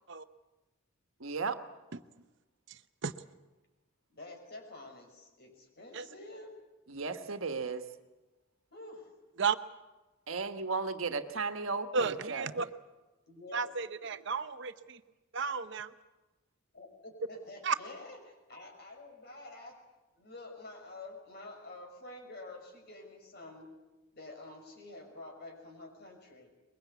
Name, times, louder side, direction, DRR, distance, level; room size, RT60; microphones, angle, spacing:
voice 1, 1.2-1.6 6.9-7.8 10.3-12.7, right 4 dB, 70° right, 8 dB, 1.4 m, -35 dB
voice 2, 4.1-6.5 8.7-9.1 13.3-13.6 16.7-19.7 20.2-23.7 24.1-26.5, left 2 dB, 50° left, 3 dB, 6.0 m, -48 dB
voice 3, 11.9-12.6 13.5-15.0 15.3-15.9 17.6-17.7, right 5 dB, 55° right, 11 dB, 0.8 m, -32 dB
23.5 x 22.0 x 8.3 m, 1.1 s
head